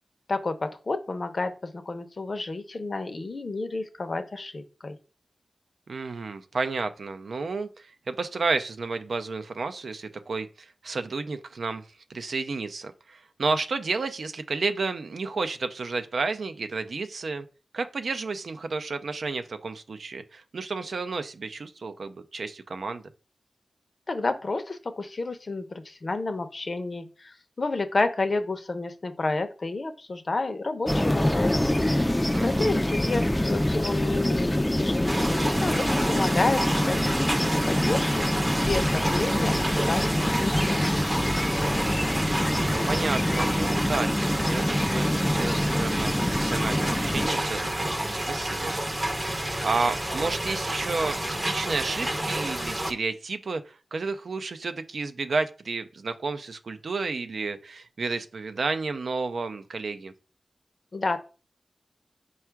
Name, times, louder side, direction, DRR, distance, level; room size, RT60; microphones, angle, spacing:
voice 1, 0.3-5.0 24.1-31.8 32.4-41.0 60.9-61.2, left 3 dB, 55° left, 0.6 m, -30 dB
voice 2, 5.9-11.8 12.1-17.5 17.7-23.0 32.3-32.7 42.5-48.8 49.6-60.1, right 4 dB, 80° right, 0.4 m, -31 dB
sound 1, 30.9-47.3, left 1 dB, 15° left, 0.3 m, -26 dB
sound 2, 35.1-52.9, right 1 dB, 25° right, 0.6 m, -29 dB
4.4 x 2.3 x 4.5 m
wide cardioid pair, 60°, 0 cm